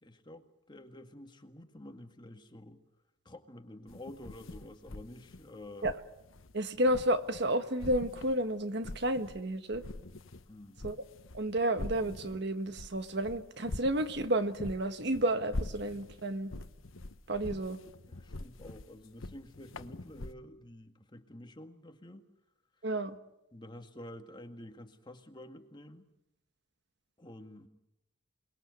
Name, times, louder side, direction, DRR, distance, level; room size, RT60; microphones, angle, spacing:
voice 1, 0.0-2.8 3.3-5.9 10.5-10.8 18.1-22.2 23.5-26.0 27.2-27.7, left 1 dB, 25° left, 6 dB, 1.9 m, -49 dB
sound 1, 3.9-7.5 7.8-9.4 9.7-20.3, left 2 dB, 80° left, 1.1 m, -44 dB
voice 2, 6.5-9.8 10.8-11.0 11.3-16.5 17.3-17.8 22.8-23.2, right 1 dB, 60° right, 9 dB, 1.4 m, -31 dB
28.0 x 20.5 x 8.1 m, 0.89 s
head